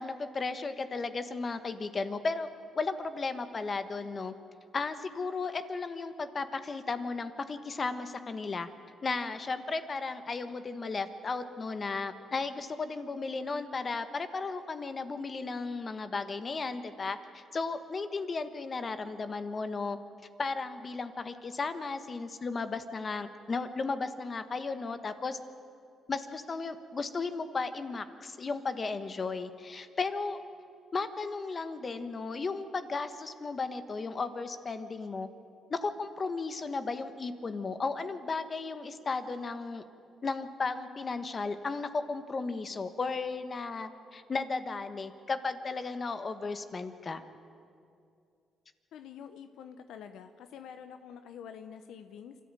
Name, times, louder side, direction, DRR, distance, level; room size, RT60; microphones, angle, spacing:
voice 1, 0.0-2.5 2.7-4.3 4.7-8.7 9.0-20.0 20.4-25.4 26.1-30.4 30.9-35.3 35.7-39.8 40.2-47.2, left 4 dB, 35° left, 10 dB, 1.4 m, -35 dB
voice 2, 48.9-52.4, left 8 dB, 80° left, 8 dB, 0.9 m, -47 dB
26.0 x 13.5 x 9.1 m, 2.5 s
cardioid pair, 90°, 0 cm